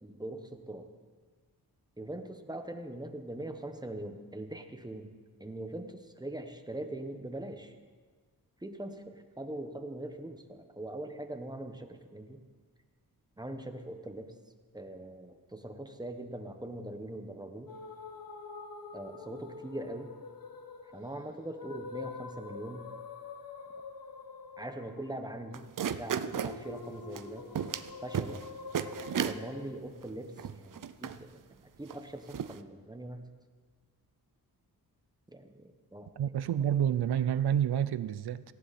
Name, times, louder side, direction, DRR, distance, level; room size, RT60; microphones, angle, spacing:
voice 1, 0.0-0.9 2.0-5.1 5.4-7.7 8.6-12.4 13.4-14.3 14.7-17.7 18.9-20.1 20.9-22.9 24.6-27.5 28.0-28.4 29.1-33.3 35.3-36.1, right 1 dB, 10° right, 1.3 m, -42 dB
sound 1, 17.7-29.8, left 5 dB, 60° left, 1.4 m, -46 dB
sound 2, 25.5-26.6 27.1-27.2 27.5-27.9 28.1-28.4 28.7-29.4 30.0-30.1 30.4-31.2 31.9-32.0 32.3-32.6, right 8 dB, 55° right, 0.7 m, -33 dB
voice 2, 36.2-38.4, right 9 dB, 90° right, 0.7 m, -29 dB
17.5 x 15.5 x 4.3 m
wide cardioid pair, 95°, 38 cm